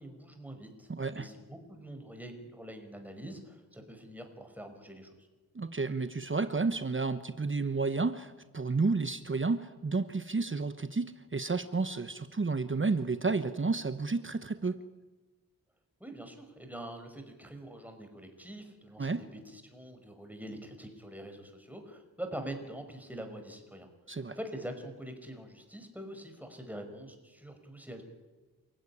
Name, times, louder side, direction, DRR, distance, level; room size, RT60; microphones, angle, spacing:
voice 1, 0.0-5.1 16.0-23.9 24.3-28.0, right 1 dB, 5° right, 5 dB, 5.4 m, -44 dB
voice 2, 0.9-1.3 5.5-14.8 19.0-19.2 24.1-24.4, right 4 dB, 35° right, 11 dB, 1.1 m, -31 dB
28.5 x 15.5 x 10.0 m, 1.2 s
wide cardioid pair, 70°, 35 cm